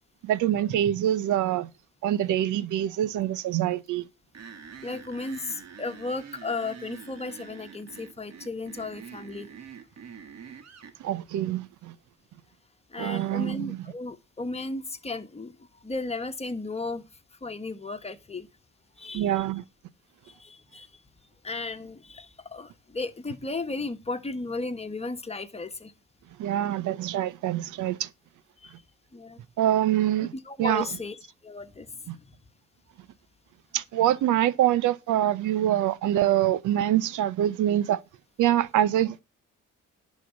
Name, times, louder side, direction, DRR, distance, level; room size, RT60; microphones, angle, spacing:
voice 1, 0.2-1.7 2.0-4.0 11.0-11.9 13.0-13.8 19.1-19.6 26.4-28.1 29.6-30.3 30.6-30.8 32.1-32.2 33.7-38.0 38.4-39.2, right 12 dB, 80° right, 0.8 m, -25 dB
sound 1, 4.3-11.0, right 7 dB, 60° right, 1.7 m, -45 dB
voice 2, 4.8-9.5 12.9-15.5 15.8-17.0 17.4-18.5 19.0-19.5 20.2-20.9 21.4-25.9 28.6-28.7 29.1-29.4 30.3-31.2 31.4-31.9, left 3 dB, 20° left, 1.4 m, -35 dB
11.0 x 4.3 x 7.2 m
cardioid pair, 90°, 30 cm